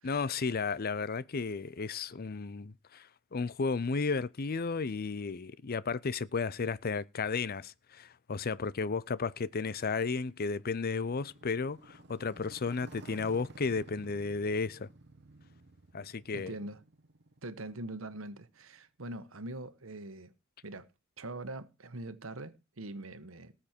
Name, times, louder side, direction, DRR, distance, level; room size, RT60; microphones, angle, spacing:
voice 1, 0.0-3.1 3.3-14.9 15.9-16.5, left 4 dB, 50° left, 0.6 m, -33 dB
Motorcycle, 9.1-18.7, right 2 dB, 55° right, 1.2 m, -55 dB
voice 2, 16.3-16.8 17.4-20.3 20.6-20.9 21.2-23.5, right 2 dB, 85° right, 1.3 m, -43 dB
18.5 x 7.4 x 4.4 m
head